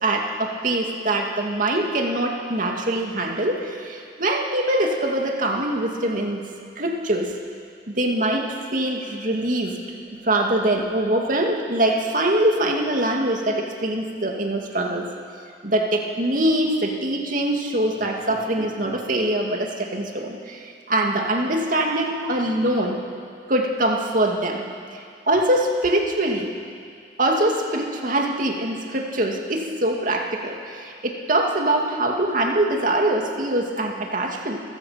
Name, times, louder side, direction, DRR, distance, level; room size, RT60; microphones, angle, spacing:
voice 1, 0.0-6.4 6.8-7.3 7.9-9.8 10.1-15.1 15.6-23.0 23.5-24.6 25.3-26.5 27.2-34.6, right 1 dB, 50° right, 1 dB, 2.3 m, -23 dB
29.5 x 15.5 x 5.9 m, 2.2 s
head